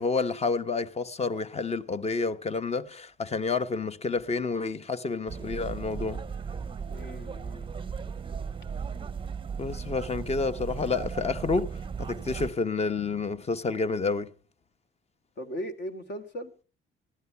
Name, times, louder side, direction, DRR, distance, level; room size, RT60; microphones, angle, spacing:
voice 1, 0.0-6.2 9.6-14.3, left 4 dB, 30° left, 1.0 m, -29 dB
sound 1, 5.3-12.5, right 6 dB, 25° right, 0.6 m, -36 dB
voice 2, 6.9-7.7 15.4-16.6, equal, 60° left, 2.1 m, -38 dB
16.0 x 11.0 x 5.6 m
cardioid pair, 90°, 20 cm